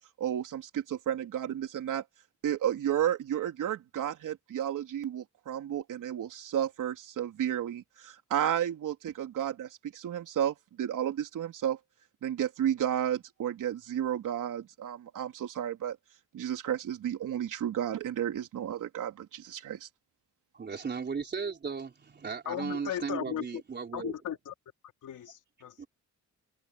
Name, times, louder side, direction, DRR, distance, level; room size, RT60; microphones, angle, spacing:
voice 1, 0.0-2.0 2.4-11.8 12.2-16.0 16.3-19.9, right 10 dB, 90° right, 3.7 m, -32 dB
voice 2, 20.5-24.1 25.8-25.9, right 5 dB, 35° right, 4.2 m, -36 dB
voice 3, 22.5-23.5 23.9-24.5 25.0-25.7, left 10 dB, 85° left, 3.7 m, -36 dB
wide cardioid pair, 155°, 30 cm